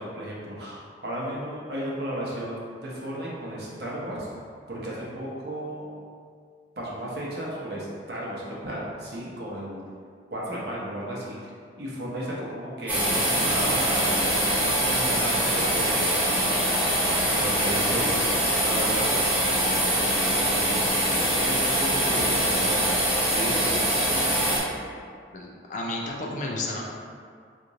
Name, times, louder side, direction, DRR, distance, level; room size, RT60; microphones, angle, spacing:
voice 1, 0.0-4.3 4.7-5.9 6.8-9.8 10.3-11.5 11.8-16.3 16.8-18.2 18.6-23.1 23.3-23.9, right 1 dB, 60° right, -5 dB, 0.8 m, -34 dB
sound 1, 12.9-24.6, equal, 10° right, 0.7 m, -23 dB
voice 2, 25.3-26.8, left 2 dB, 45° left, -2 dB, 0.4 m, -32 dB
2.9 x 2.5 x 3.7 m, 2.1 s
head